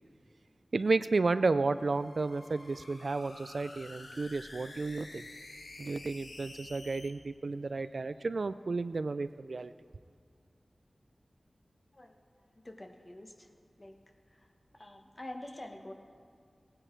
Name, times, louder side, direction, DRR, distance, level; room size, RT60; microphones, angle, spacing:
voice 1, 0.7-5.2 5.8-9.7, right 3 dB, 65° right, 13 dB, 0.3 m, -32 dB
sound 1, 1.7-7.1, left 2 dB, 80° left, 1.2 m, -50 dB
voice 2, 12.6-13.5 13.8-13.9 14.3-14.5 14.7-15.9, left 1 dB, 30° left, 4 dB, 1.2 m, -46 dB
18.0 x 9.9 x 4.6 m, 2.3 s
wide cardioid pair, 85°, 0 cm